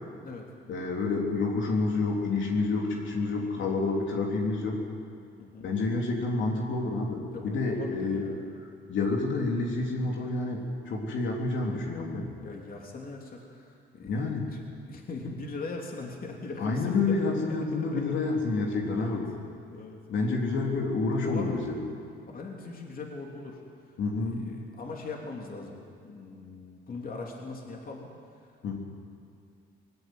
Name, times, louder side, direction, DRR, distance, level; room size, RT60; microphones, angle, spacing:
voice 1, 0.7-4.8 5.6-8.2 8.9-12.3 14.1-14.5 16.6-19.3 20.1-21.8 24.0-24.4 28.6-28.8, left 3 dB, 70° left, 0 dB, 3.3 m, -28 dB
voice 2, 3.4-3.7 5.4-5.7 7.3-8.5 12.4-14.6 14.9-17.2 17.5-18.0 18.8-19.2 19.7-20.0 20.6-20.8 21.2-21.6 22.3-23.9 24.3-28.1, left 3 dB, 45° left, 0 dB, 3.2 m, -41 dB
20.0 x 15.5 x 9.5 m, 2.4 s
cardioid pair, 90°, 20 cm